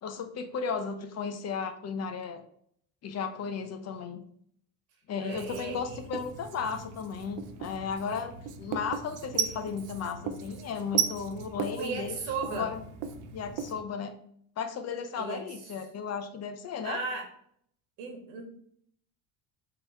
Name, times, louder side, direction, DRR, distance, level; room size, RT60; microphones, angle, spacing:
voice 1, 0.0-2.4 3.0-4.2 5.1-12.1 12.5-12.8 13.3-14.1 14.6-17.0, left 6 dB, 40° left, 7 dB, 0.7 m, -35 dB
voice 2, 5.2-6.0 11.8-12.7 15.2-15.5 16.8-17.3 18.0-18.4, right 4 dB, 80° right, 2 dB, 1.5 m, -36 dB
Writing, 5.3-13.8, right 8 dB, 55° right, 0.6 m, -36 dB
3.8 x 3.1 x 4.3 m, 0.66 s
supercardioid pair, 100°, 38 cm